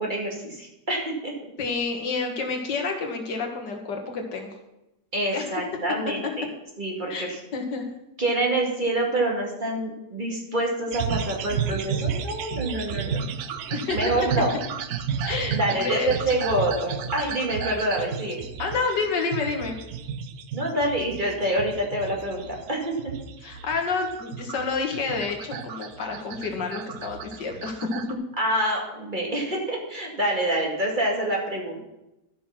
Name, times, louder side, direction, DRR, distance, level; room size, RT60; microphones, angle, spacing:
voice 1, 0.0-1.3 5.1-6.4 6.8-7.4 8.2-13.2 13.9-14.6 15.2-18.4 20.5-23.1 28.4-31.9, right 1 dB, 30° right, -1 dB, 2.3 m, -27 dB
voice 2, 1.6-4.5 5.3-5.9 7.1-7.9 13.7-14.1 15.2-16.1 18.6-19.8 23.4-27.9, left 4 dB, 85° left, 3 dB, 2.3 m, -29 dB
sound 1, 10.9-28.1, right 7 dB, 70° right, 1.2 m, -33 dB
12.5 x 6.2 x 5.8 m, 0.92 s
omnidirectional pair, 1.8 m